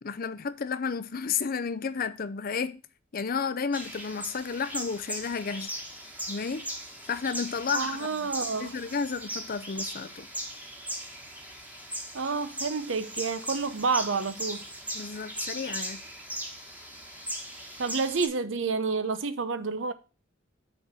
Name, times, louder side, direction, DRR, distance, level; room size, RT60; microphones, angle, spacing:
voice 1, 0.0-2.8 3.1-5.7 6.3-6.7 7.1-8.3 8.6-10.3 14.9-16.0, left 5 dB, 50° left, 0.6 m, -32 dB
sound 1, 3.7-18.3, equal, 10° right, 1.5 m, -38 dB
voice 2, 7.7-8.7 12.1-14.6 17.8-19.9, right 4 dB, 70° right, 0.8 m, -29 dB
6.6 x 4.2 x 6.1 m
head